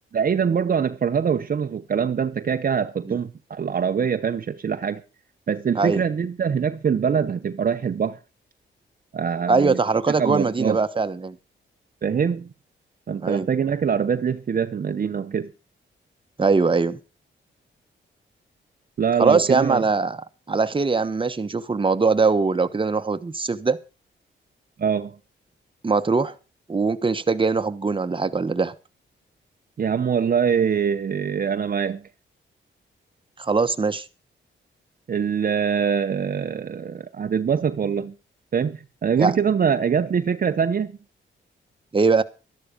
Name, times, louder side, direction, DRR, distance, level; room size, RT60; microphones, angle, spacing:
voice 1, 0.1-5.0 5.5-8.2 9.1-9.8 10.2-10.8 12.0-12.5 13.1-15.5 19.0-19.8 24.8-25.1 29.8-32.0 35.1-38.1 38.5-40.9, right 7 dB, 45° right, 0.8 m, -23 dB
voice 2, 9.5-11.4 13.2-13.5 16.4-17.0 19.2-20.2 20.5-23.8 25.8-26.3 26.7-28.7 33.4-34.1 39.2-39.4 41.9-42.2, right 4 dB, 25° right, 1.1 m, -21 dB
13.0 x 11.5 x 5.1 m
cardioid pair, 100°, 20 cm